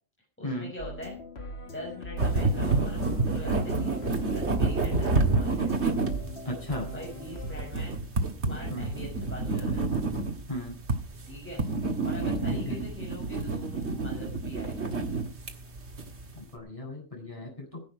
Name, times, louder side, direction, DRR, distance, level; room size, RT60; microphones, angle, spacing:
voice 1, 0.4-1.2 1.6-5.9 6.9-8.0 8.4-9.9 11.3-11.6 12.0-15.0, left 1 dB, 10° left, -3 dB, 5.9 m, -43 dB
sound 1, 0.8-7.7, left 1 dB, 55° left, 2.2 m, -41 dB
sound 2, 2.2-16.4, right 3 dB, 60° right, 2.2 m, -29 dB
voice 2, 6.4-6.9 8.5-8.9 10.5-10.8 12.5-12.8 16.3-17.8, left 1 dB, 25° left, -1 dB, 8.1 m, -36 dB
16.0 x 11.0 x 4.9 m, 0.37 s
omnidirectional pair, 1.3 m